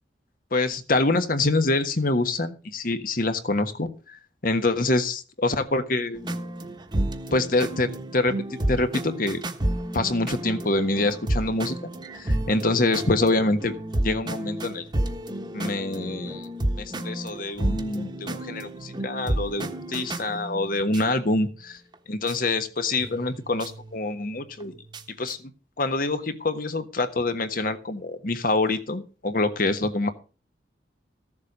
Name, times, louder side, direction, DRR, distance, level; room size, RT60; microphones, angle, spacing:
voice 1, 0.5-6.2 7.3-8.4 8.7-9.4 9.9-11.8 12.1-13.7 14.0-14.8 15.5-16.5 16.8-21.8 22.1-24.7 25.2-25.5 25.8-30.1, left 2 dB, 55° left, 9 dB, 1.3 m, -25 dB
sound 1, 6.2-21.1 21.9-22.0 22.3-22.4 22.9-25.3, right 1 dB, 25° right, 1.3 m, -31 dB
14.5 x 7.4 x 5.4 m, 0.35 s
head